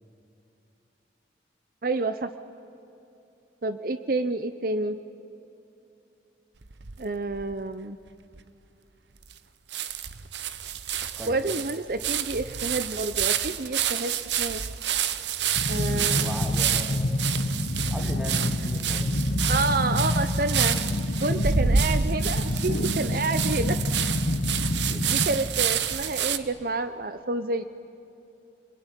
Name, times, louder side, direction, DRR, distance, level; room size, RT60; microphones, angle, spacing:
voice 1, 1.8-2.3 3.6-5.0 7.0-8.0 11.3-14.6 15.7-16.3 19.5-20.8 21.2-23.8 25.0-27.6, right 3 dB, 55° right, 11 dB, 0.7 m, -29 dB
sound 1, 6.6-7.5 8.1-8.2 8.3-8.4 9.3-9.4 9.7-26.4, right 8 dB, 80° right, 1.0 m, -29 dB
voice 2, 11.2-11.5 15.9-17.2 17.9-19.2 24.9-25.1, left 1 dB, 5° right, 2 dB, 2.7 m, -38 dB
sound 2, 15.6-25.3, left 1 dB, 60° left, 1.5 m, -27 dB
27.0 x 21.5 x 10.0 m, 2.8 s
head